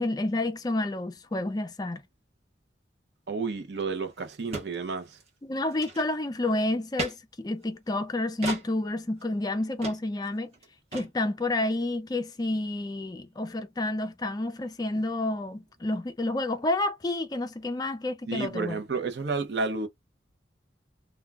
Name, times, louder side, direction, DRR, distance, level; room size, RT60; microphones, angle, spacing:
voice 1, 0.0-2.0 5.4-10.5 10.9-18.8, left 2 dB, 20° left, 0.4 m, -29 dB
voice 2, 3.3-5.2 18.3-19.9, right 4 dB, 60° right, 0.6 m, -31 dB
sound 1, 3.8-3.9 4.1-4.2 4.5-4.7 5.1-5.3 5.7-6.3 7.0-7.1 8.4-8.6 9.2-9.3 9.8-10.0 10.3-10.4 10.5-10.7 10.9-11.1, right 2 dB, 35° right, 0.8 m, -35 dB
2.2 x 2.2 x 3.4 m
head